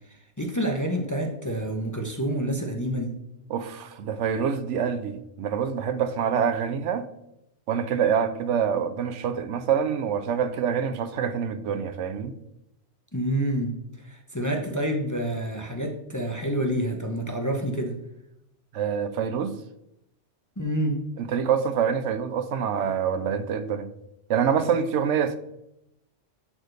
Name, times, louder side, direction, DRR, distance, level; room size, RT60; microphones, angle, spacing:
voice 1, 0.1-3.2 13.1-18.0 20.6-21.0, right 1 dB, 20° left, 2 dB, 0.6 m, -28 dB
voice 2, 3.5-7.1 7.7-12.3 18.7-19.5 21.2-23.9 24.3-25.4, right 7 dB, 75° right, 11 dB, 0.9 m, -26 dB
10.5 x 4.4 x 3.3 m, 0.83 s
omnidirectional pair, 1.3 m